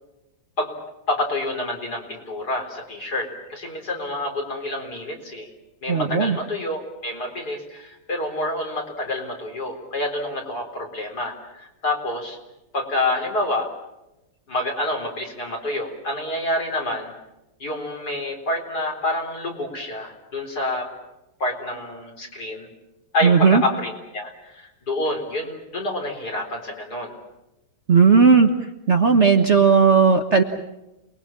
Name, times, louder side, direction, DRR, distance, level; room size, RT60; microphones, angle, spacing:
voice 1, 1.1-5.5 5.8-12.4 12.7-13.7 14.5-17.1 17.6-20.9 21.4-22.7 23.1-27.1, left 1 dB, 50° left, 2 dB, 4.8 m, -28 dB
voice 2, 5.9-6.4 23.2-23.6 27.9-28.5 28.9-30.4, right 5 dB, 40° right, 5 dB, 1.4 m, -15 dB
28.5 x 21.5 x 7.4 m, 0.95 s
omnidirectional pair, 2.1 m